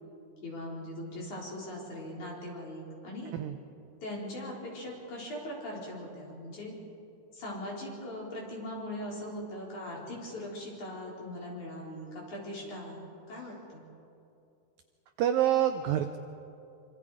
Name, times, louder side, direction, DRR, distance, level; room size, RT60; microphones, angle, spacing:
voice 1, 0.4-3.3 4.0-6.7 7.3-13.8, left 1 dB, 45° left, -3 dB, 5.5 m, -40 dB
voice 2, 15.2-16.2, right 11 dB, 85° right, 7 dB, 2.0 m, -26 dB
26.0 x 25.5 x 5.0 m, 2.6 s
omnidirectional pair, 4.9 m